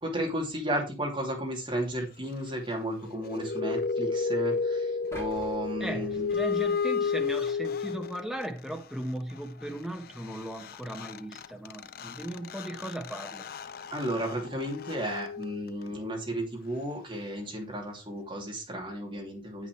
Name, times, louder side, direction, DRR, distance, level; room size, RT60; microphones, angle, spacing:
voice 1, 0.0-6.3 13.9-19.7, right 1 dB, 25° right, 3.0 m, -33 dB
sound 1, 3.1-8.5 10.3-10.4 10.6-16.1, left 5 dB, 50° left, 0.4 m, -32 dB
sound 2, 5.1-7.3 7.8-7.9, left 1 dB, 15° left, 3.4 m, -48 dB
voice 2, 5.8-13.5, right 1 dB, ahead, 1.3 m, -37 dB
8.6 x 8.5 x 3.3 m
head